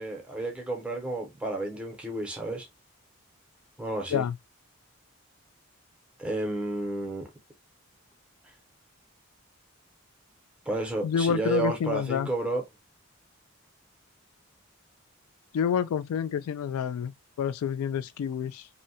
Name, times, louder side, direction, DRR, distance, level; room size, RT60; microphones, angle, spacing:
voice 1, 0.0-2.7 3.8-4.2 6.2-7.3 10.7-12.6, right 2 dB, 5° right, 0.6 m, -31 dB
voice 2, 11.0-12.3 15.5-18.7, left 7 dB, 90° left, 0.3 m, -28 dB
2.7 x 2.1 x 2.6 m
head